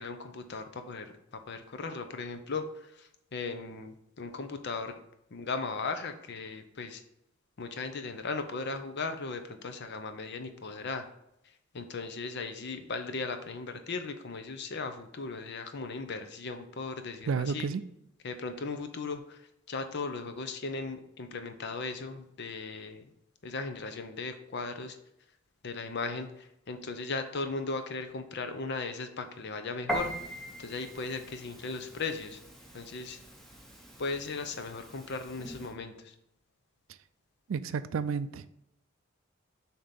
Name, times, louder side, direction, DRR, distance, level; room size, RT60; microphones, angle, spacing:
voice 1, 0.0-5.0 5.3-7.0 7.6-11.0 11.7-17.7 18.2-19.4 19.7-23.0 23.4-25.0 25.6-30.1 30.6-32.4 32.7-33.2 34.0-36.1, left 4 dB, 55° left, 8 dB, 0.7 m, -37 dB
voice 2, 17.3-17.8 37.5-38.5, right 5 dB, 70° right, 14 dB, 0.4 m, -31 dB
Piano, 29.9-35.7, right 1 dB, ahead, 0.9 m, -41 dB
7.3 x 2.9 x 5.2 m, 0.79 s
head